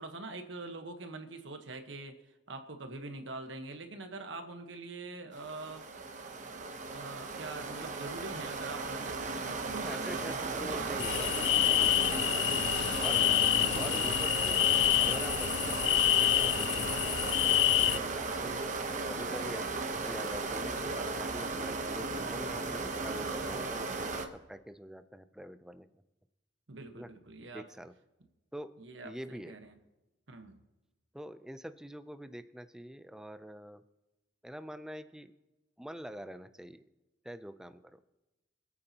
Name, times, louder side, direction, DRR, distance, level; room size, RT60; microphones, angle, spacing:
voice 1, 0.0-5.8 6.9-10.9 11.9-12.6 26.7-27.6 28.8-29.8 30.3-30.6, right 3 dB, 75° right, 6 dB, 1.2 m, -44 dB
sound 1, 5.3-24.3, right 3 dB, 40° right, 0.9 m, -36 dB
voice 2, 9.7-11.6 12.1-12.3 13.0-13.2 13.8-14.6 15.0-16.7 17.0-18.6 19.1-25.9 27.0-27.1 27.5-27.9 28.5-28.7 29.0-29.5 31.1-33.8 34.4-35.3 35.8-36.8 37.2-38.0, equal, 5° right, 10 dB, 0.4 m, -45 dB
Squeak, 10.8-15.4, left 3 dB, 90° left, 1.5 m, -43 dB
sound 2, 11.0-18.0, left 14 dB, 70° left, 0.4 m, -27 dB
25.5 x 8.8 x 2.9 m, 1.0 s
head